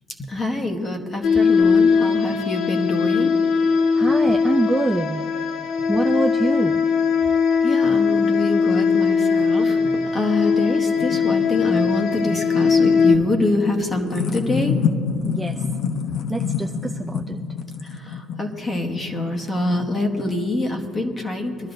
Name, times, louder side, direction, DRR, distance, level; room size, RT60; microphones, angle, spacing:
voice 1, 0.3-3.4 7.6-14.7 17.8-21.7, left 2 dB, 15° left, 3 dB, 1.1 m, -25 dB
sound 1, 1.2-13.2, left 5 dB, 70° left, 1.2 m, -20 dB
voice 2, 4.0-5.2 5.9-6.8 15.2-15.6 16.3-17.4, right 2 dB, 5° right, 2 dB, 0.3 m, -24 dB
sound 2, 10.4-20.5, left 6 dB, 50° left, 0.8 m, -29 dB
22.5 x 12.5 x 2.6 m, 2.3 s
cardioid pair, 170°, 0 cm